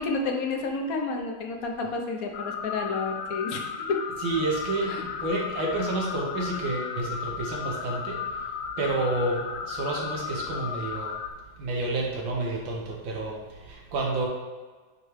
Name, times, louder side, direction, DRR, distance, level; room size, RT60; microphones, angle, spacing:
voice 1, 0.0-4.0 4.9-5.0, left 3 dB, 60° left, 2 dB, 0.9 m, -30 dB
sound 1, 2.3-11.3, left 6 dB, 85° left, 1.4 m, -34 dB
voice 2, 4.2-8.5 8.8-11.2 11.6-14.3, right 2 dB, 75° right, -1 dB, 1.7 m, -30 dB
9.4 x 3.2 x 3.1 m, 1.4 s
omnidirectional pair, 2.2 m